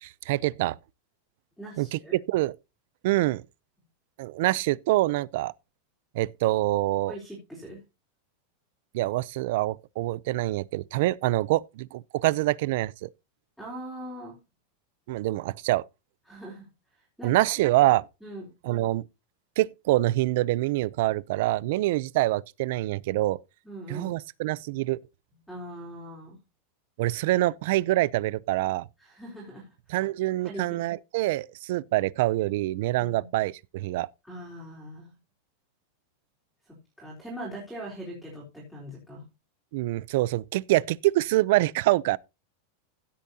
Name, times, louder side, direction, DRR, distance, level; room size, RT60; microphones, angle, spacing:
voice 1, 0.0-0.8 1.8-2.5 3.0-3.4 4.2-5.5 6.1-7.2 8.9-13.1 15.1-15.8 17.2-18.0 18.6-19.1 19.6-23.4 23.9-25.0 27.0-28.9 29.9-34.1 39.7-42.2, right 17 dB, 50° right, 0.5 m, -25 dB
voice 2, 1.6-2.2 7.1-7.8 13.6-14.4 16.3-16.7 17.2-17.4 18.2-18.4 23.6-24.1 25.5-26.4 29.0-30.0 30.4-30.8 33.0-33.3 34.2-35.1 36.7-39.2, equal, ahead, 3.9 m, -41 dB
16.0 x 8.4 x 2.8 m
supercardioid pair, 175°, 0 cm